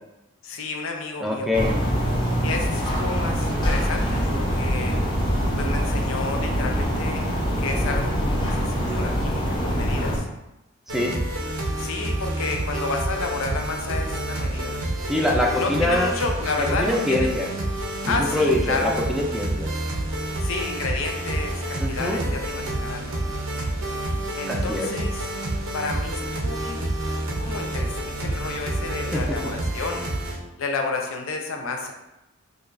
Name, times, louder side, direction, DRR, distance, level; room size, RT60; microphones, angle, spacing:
voice 1, 0.4-1.5 2.4-5.0 5.5-7.2 7.6-10.3 11.8-14.7 15.5-17.3 18.1-19.0 20.4-23.2 24.3-25.3 25.7-26.9 27.4-30.1 30.6-31.9, left 3 dB, 75° left, 3 dB, 0.5 m, -31 dB
voice 2, 1.2-1.7 10.9-11.2 15.1-16.1 16.6-17.5 18.0-19.7 21.8-22.2 24.5-24.9 29.1-29.4, left 1 dB, ahead, -2 dB, 0.4 m, -24 dB
sound 1, 1.5-10.2, equal, 20° left, 0.7 m, -24 dB
sound 2, 10.9-30.4, right 1 dB, 85° right, 0.7 m, -28 dB
4.9 x 2.3 x 2.6 m, 0.93 s
head